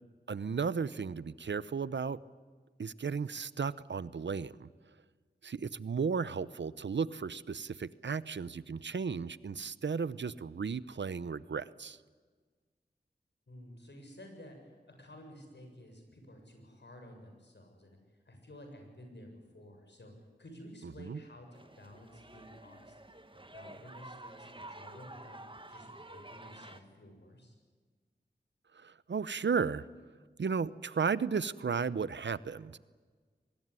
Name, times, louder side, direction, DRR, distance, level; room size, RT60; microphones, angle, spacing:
voice 1, 0.3-2.2 2.8-4.7 5.4-12.0 21.0-21.2 28.7-29.9 30.4-32.8, right 5 dB, 85° right, 17 dB, 0.8 m, -34 dB
voice 2, 13.5-18.0 18.3-20.1 20.4-22.9 23.3-25.4 25.7-27.5, left 1 dB, 75° left, 4 dB, 7.1 m, -52 dB
sound 1, 21.5-26.8, right 2 dB, 30° right, 1.9 m, -50 dB
24.0 x 21.0 x 9.8 m, 1.5 s
wide cardioid pair, 50°, 18 cm